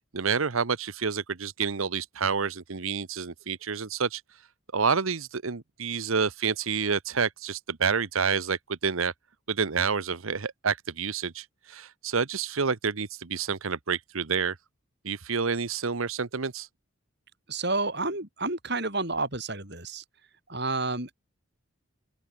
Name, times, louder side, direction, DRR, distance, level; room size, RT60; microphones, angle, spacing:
voice 1, 0.0-4.2 4.7-9.1 9.5-14.6 15.0-16.7, right 5 dB, 80° right, 1.0 m, -28 dB
voice 2, 17.5-20.0 20.5-21.1, right 3 dB, 50° right, 6.3 m, -30 dB
open air
head